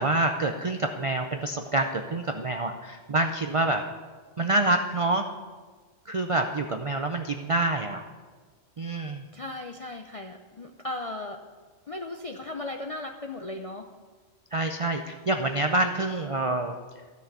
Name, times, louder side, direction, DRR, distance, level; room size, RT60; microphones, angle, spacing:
voice 1, 0.0-3.8 4.4-5.3 6.1-8.0 8.8-9.2 14.5-16.8, right 2 dB, 55° right, 5 dB, 0.3 m, -27 dB
voice 2, 9.3-11.4 11.9-13.9, left 2 dB, 55° left, 4 dB, 0.4 m, -36 dB
12.5 x 6.3 x 6.7 m, 1.5 s
omnidirectional pair, 1.3 m